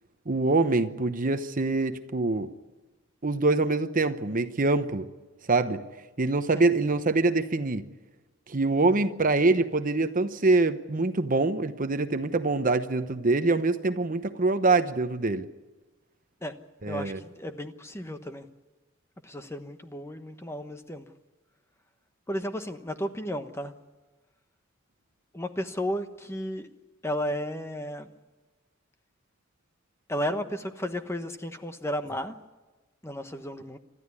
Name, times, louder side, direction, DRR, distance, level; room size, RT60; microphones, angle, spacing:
voice 1, 0.3-2.5 3.2-5.1 5.5-5.8 6.2-7.8 8.5-15.5 16.8-17.2, right 3 dB, 45° right, 10 dB, 0.9 m, -24 dB
voice 2, 16.9-18.4 19.2-21.1 22.3-23.7 25.3-26.7 27.0-28.1 30.1-32.3 33.0-33.8, equal, 15° left, 8 dB, 1.1 m, -33 dB
28.5 x 13.5 x 9.8 m, 1.2 s
head